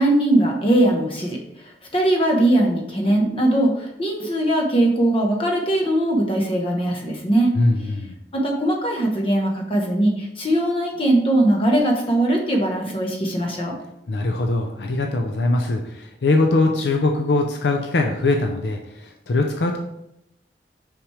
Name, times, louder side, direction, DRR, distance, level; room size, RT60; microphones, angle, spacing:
voice 1, 0.0-7.5 8.3-13.8, right 1 dB, 30° left, 1 dB, 1.1 m, -20 dB
voice 2, 7.5-8.2 14.1-19.8, left 2 dB, 70° left, 3 dB, 0.6 m, -21 dB
5.9 x 5.1 x 3.3 m, 0.84 s
head